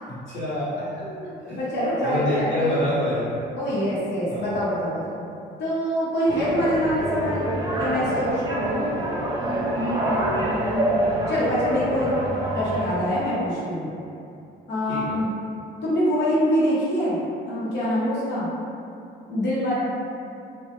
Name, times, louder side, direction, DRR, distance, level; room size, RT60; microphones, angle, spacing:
voice 1, 0.1-1.1 1.4-1.6 2.0-3.4 4.3-4.5 14.9-15.2, left 1 dB, 80° left, -12 dB, 1.2 m, -27 dB
voice 2, 0.9-2.8 3.6-5.2 5.6-7.4 7.8-8.9 9.4-11.0 11.3-13.9 14.7-15.3 15.8-17.2 17.5-18.5 19.3-19.7, equal, 60° left, -9 dB, 0.8 m, -25 dB
sound 1, 6.3-13.0, right 1 dB, 20° right, 0.4 m, -26 dB
2.2 x 2.2 x 2.8 m, 2.6 s
cardioid pair, 90°, 20 cm